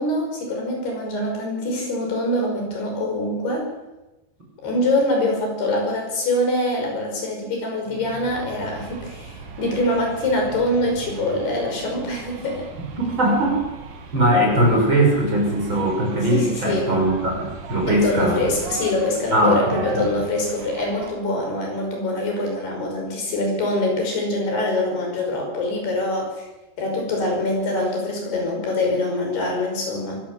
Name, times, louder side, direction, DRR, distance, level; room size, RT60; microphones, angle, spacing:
voice 1, 0.0-3.7 4.6-12.7 16.3-16.9 17.9-26.4 26.8-30.2, left 1 dB, 70° left, 1 dB, 7.7 m, -24 dB
sound 1, 7.9-21.1, right 4 dB, 75° right, 4.4 m, -39 dB
voice 2, 13.2-13.6 14.1-18.4 19.3-19.9, right 1 dB, 25° right, -1 dB, 6.9 m, -20 dB
24.5 x 16.0 x 7.7 m, 1.0 s
omnidirectional pair, 4.7 m